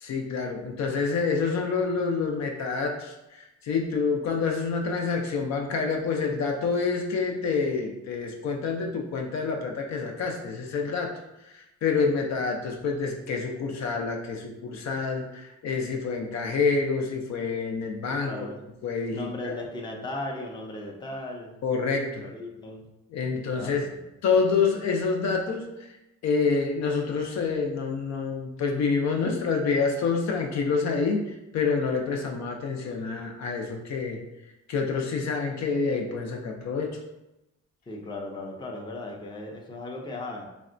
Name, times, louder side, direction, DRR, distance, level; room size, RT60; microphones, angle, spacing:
voice 1, 0.0-11.1 11.5-18.3 18.8-19.5 21.6-22.2 23.1-23.9 24.2-25.7 26.2-31.2 31.5-34.2 34.7-37.0, left 4 dB, 65° left, 2 dB, 0.5 m, -27 dB
voice 2, 18.3-18.6 19.1-21.5 22.2-22.9 23.5-23.8 37.9-40.4, left 2 dB, 15° left, 0 dB, 0.5 m, -37 dB
3.4 x 2.1 x 2.5 m, 0.92 s
cardioid pair, 90°, 30 cm